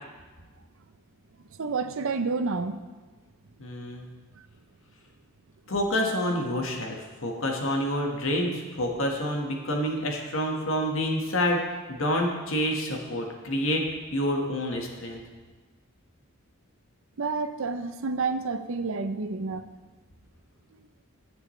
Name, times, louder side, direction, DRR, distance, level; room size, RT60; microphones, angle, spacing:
voice 1, 1.6-2.8 17.2-19.6, right 4 dB, 65° right, 10 dB, 0.6 m, -29 dB
voice 2, 3.6-4.1 5.7-11.6 11.9-13.8 14.1-15.2, equal, 65° left, 1 dB, 1.6 m, -28 dB
15.5 x 7.2 x 3.2 m, 1.3 s
head